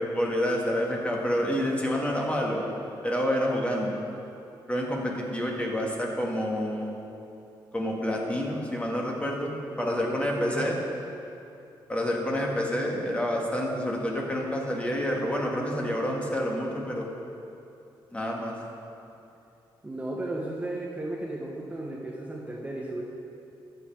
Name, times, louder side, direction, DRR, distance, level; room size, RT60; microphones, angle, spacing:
voice 1, 0.0-2.7 3.0-4.0 4.7-6.9 7.7-9.5 9.8-10.8 11.9-17.1 18.1-18.5, equal, 15° left, -1 dB, 1.8 m, -28 dB
voice 2, 9.7-10.7 19.8-23.0, right 1 dB, 15° right, -2 dB, 1.1 m, -35 dB
13.5 x 6.9 x 4.6 m, 2.8 s
cardioid pair, 85°, 8 cm